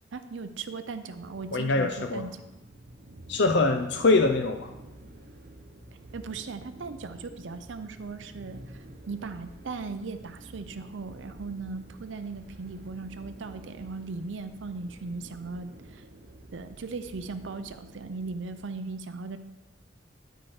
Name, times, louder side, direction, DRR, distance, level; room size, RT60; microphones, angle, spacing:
voice 1, 0.1-2.4 6.1-16.0 16.5-19.4, right 4 dB, 65° right, 10 dB, 0.5 m, -38 dB
sound 1, 1.1-18.6, right 1 dB, 45° right, 0.9 m, -49 dB
voice 2, 1.5-2.3 3.3-4.7, left 3 dB, 55° left, 5 dB, 0.6 m, -23 dB
13.0 x 4.5 x 4.8 m, 0.97 s
head